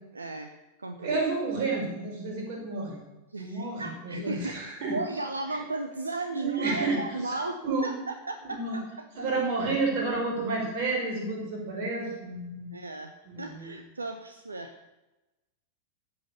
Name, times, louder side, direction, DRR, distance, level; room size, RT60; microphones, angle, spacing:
voice 1, 0.1-0.5 0.8-1.2 3.3-4.6 4.9-9.4 12.7-14.9, right 2 dB, 80° right, 8 dB, 0.9 m, -36 dB
voice 2, 1.0-3.0 3.4-5.0 6.3-7.0 7.3-7.4 7.6-7.9 8.5-8.8 9.2-12.7 13.3-13.7, right 3 dB, 45° right, 0 dB, 5.3 m, -30 dB
14.0 x 8.0 x 7.0 m, 1.0 s
figure-of-eight pair, 90°, 0 cm